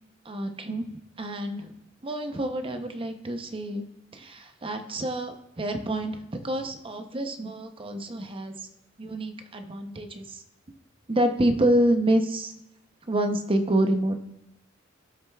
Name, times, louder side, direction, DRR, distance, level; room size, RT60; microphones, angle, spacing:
voice 1, 0.3-1.7 2.0-3.9 4.1-8.7 9.0-10.4 11.1-12.5 13.1-14.2, right 1 dB, 25° right, 6 dB, 0.7 m, -27 dB
17.0 x 6.4 x 2.3 m, 0.84 s
head